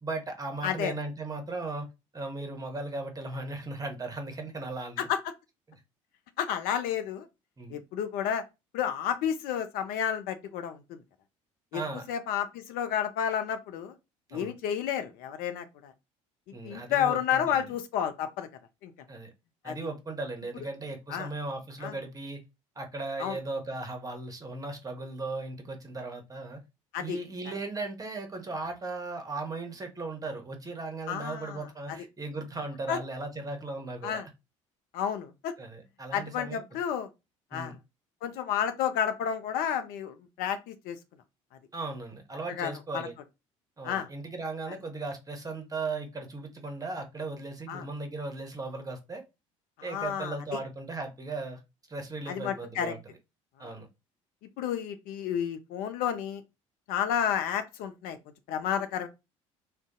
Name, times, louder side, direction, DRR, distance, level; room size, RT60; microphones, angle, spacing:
voice 1, 0.0-1.9 2.1-5.1 5.7-5.8 7.6-7.8 11.7-12.1 14.3-14.5 16.5-17.6 19.1-19.3 19.6-22.4 22.8-26.6 27.0-34.2 35.6-36.6 37.5-37.8 41.7-43.1 43.8-49.2 49.8-51.6 51.9-53.0 53.6-53.9, right 3 dB, 20° right, 1.0 m, -37 dB
voice 2, 0.6-0.9 5.0-5.2 6.4-7.3 7.7-8.4 8.7-11.0 11.7-11.8 12.1-13.9 14.3-15.9 16.6-18.5 18.8-18.9 19.6-19.7 21.1-21.3 21.8-22.0 23.2-23.4 26.9-27.2 31.1-31.6 31.9-32.0 32.9-33.0 34.0-34.3 34.9-35.5 36.1-37.1 37.5-37.7 38.2-41.0 42.5-43.1 43.8-44.1 47.7-47.9 49.9-50.3 52.3-52.9 53.6-53.8 54.6-56.4 56.9-58.2 58.5-59.1, left 9 dB, 60° left, 0.5 m, -31 dB
2.5 x 2.2 x 3.7 m
hypercardioid pair, 60°, 17 cm